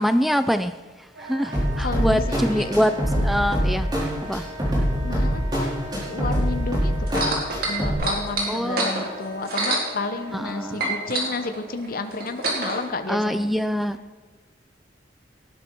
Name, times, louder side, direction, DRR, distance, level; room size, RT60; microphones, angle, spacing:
voice 1, 0.0-2.9 3.2-3.9 4.2-4.5 8.5-8.9 10.3-11.0 13.1-14.0, equal, ahead, 11 dB, 0.4 m, -24 dB
Wind instrument woodwind instrument, 1.1-11.3, right 1 dB, 80° right, 3.1 m, -40 dB
voice 2, 1.5-2.7 5.0-7.3 7.6-13.5, left 3 dB, 50° left, 8 dB, 0.9 m, -31 dB
sound 1, 1.5-7.9, equal, 25° right, 4.6 m, -24 dB
sound 2, 7.1-10.5 10.8-12.8 13.6-13.7, right 2 dB, 55° right, 3.7 m, -27 dB
18.5 x 11.0 x 4.6 m, 1.4 s
head